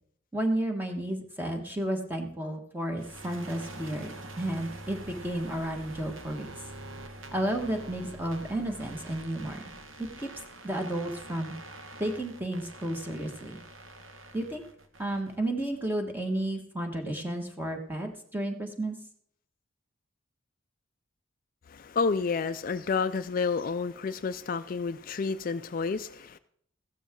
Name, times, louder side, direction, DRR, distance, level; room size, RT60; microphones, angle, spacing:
voice 1, 0.3-6.5 7.3-9.6 10.2-10.3 10.6-11.5 12.0-13.6 14.3-14.6 15.0-19.0, right 1 dB, 10° right, 1.5 m, -32 dB
sound 1, 3.0-15.8, right 2 dB, 85° right, 1.5 m, -45 dB
voice 2, 21.7-26.4, left 5 dB, 45° left, 0.4 m, -30 dB
15.0 x 12.5 x 3.7 m
head